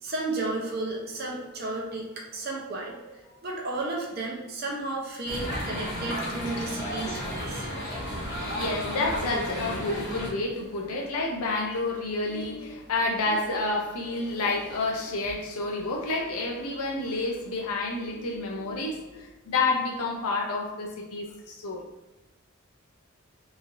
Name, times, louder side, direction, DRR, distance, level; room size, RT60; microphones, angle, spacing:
voice 1, 0.0-7.7 8.2-8.4, right 2 dB, 45° right, -2 dB, 0.6 m, -33 dB
sound 1, 5.2-10.3, equal, 50° left, 0.8 m, -33 dB
voice 2, 8.0-21.8, left 3 dB, 90° left, 0 dB, 0.5 m, -30 dB
3.0 x 2.5 x 2.5 m, 1.1 s
head